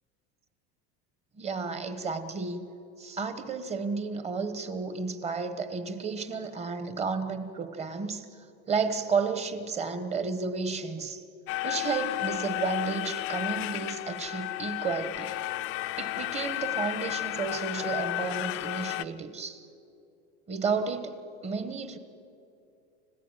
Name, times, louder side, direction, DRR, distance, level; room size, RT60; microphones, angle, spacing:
voice 1, 1.4-2.7 3.0-8.3 8.7-11.2 11.6-15.3 16.0-19.6 20.5-22.0, right 4 dB, 20° right, 10 dB, 1.2 m, -32 dB
sound 1, 11.5-19.0, left 17 dB, 45° left, 0.6 m, -33 dB
29.5 x 15.5 x 9.1 m, 2.7 s
cardioid pair, 165°, 32 cm